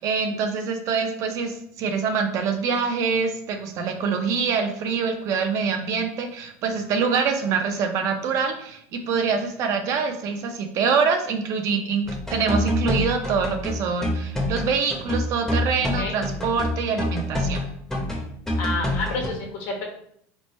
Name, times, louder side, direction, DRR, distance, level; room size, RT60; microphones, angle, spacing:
voice 1, 0.0-17.6, right 5 dB, 45° right, 5 dB, 0.5 m, -25 dB
sound 1, 12.0-19.3, left 1 dB, 5° left, 0.7 m, -26 dB
voice 2, 18.6-19.8, left 3 dB, 60° left, -1 dB, 1.1 m, -29 dB
3.2 x 2.1 x 4.2 m, 0.69 s
supercardioid pair, 135°, 7 cm